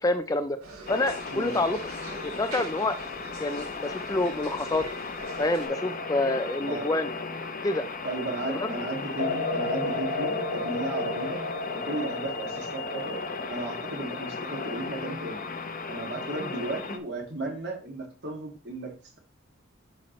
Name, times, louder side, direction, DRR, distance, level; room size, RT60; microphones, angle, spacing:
voice 1, 0.0-0.6 0.9-1.8 2.2-3.0 3.4-4.8 5.4-7.1 7.6-7.9 8.5-8.7, left 2 dB, 15° left, 10 dB, 0.4 m, -27 dB
sound 1, 0.6-5.7, right 3 dB, 90° right, 2.7 m, -44 dB
sound 2, 0.9-17.0, left 4 dB, 40° left, 0.7 m, -36 dB
voice 2, 1.3-1.6 6.7-6.9 8.0-11.4 11.7-13.2 13.5-15.4 15.9-19.2, right 2 dB, 55° right, 1 dB, 2.1 m, -35 dB
sound 3, 5.2-8.2 9.2-13.5, left 2 dB, 70° left, 1.0 m, -34 dB
10.5 x 4.3 x 3.1 m, 0.36 s
head